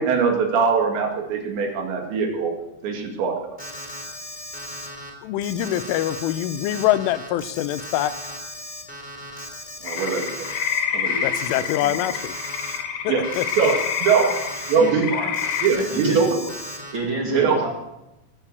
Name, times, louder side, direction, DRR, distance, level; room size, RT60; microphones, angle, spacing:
voice 1, 0.0-2.5 2.8-3.6 9.8-10.5 10.9-11.2 11.8-11.9 13.1-13.3 13.6-14.3 14.7-15.1 15.6-16.4 17.3-17.6, right 5 dB, 70° right, 3 dB, 4.3 m, -22 dB
Alarm, 3.6-5.1 5.4-10.8 11.0-12.8 13.2-14.9 15.3-17.0, left 1 dB, ahead, 2.7 m, -36 dB
voice 2, 5.2-8.4 11.2-12.1 13.1-13.5, left 13 dB, 85° left, 12 dB, 3.3 m, -24 dB
sound 1, 9.9-15.7, left 8 dB, 60° left, 2.8 m, -28 dB
voice 3, 14.8-15.3 15.9-16.2 16.9-17.7, right 2 dB, 40° right, 0 dB, 1.9 m, -28 dB
20.5 x 8.3 x 8.2 m, 0.92 s
omnidirectional pair, 5.5 m